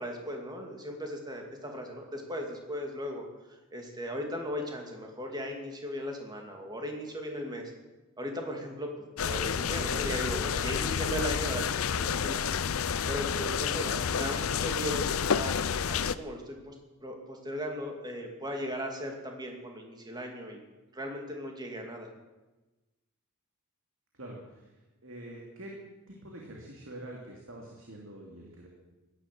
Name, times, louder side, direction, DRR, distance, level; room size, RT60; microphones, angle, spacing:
voice 1, 0.0-7.7 8.2-8.9 9.2-12.4 13.1-15.5 15.9-16.8 17.0-20.6 20.9-22.1, equal, 20° right, 2 dB, 2.5 m, -37 dB
sound 1, 9.2-16.2, left 7 dB, 75° left, 0.6 m, -30 dB
voice 2, 24.1-24.8 25.0-25.8 26.1-28.7, right 1 dB, 65° right, -1 dB, 2.6 m, -45 dB
16.0 x 11.5 x 7.7 m, 1.1 s
head